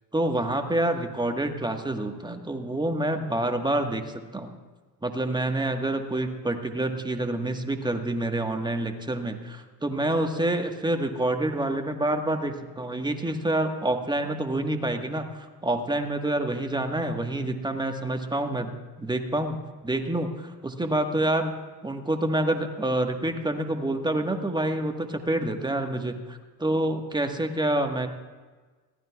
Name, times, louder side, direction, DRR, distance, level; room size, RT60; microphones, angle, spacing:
voice 1, 0.1-4.5 5.0-19.6 19.8-21.5 21.8-28.1, right 1 dB, 10° right, 5 dB, 1.4 m, -27 dB
21.5 x 15.0 x 2.4 m, 1.3 s
hypercardioid pair, 65°, 49 cm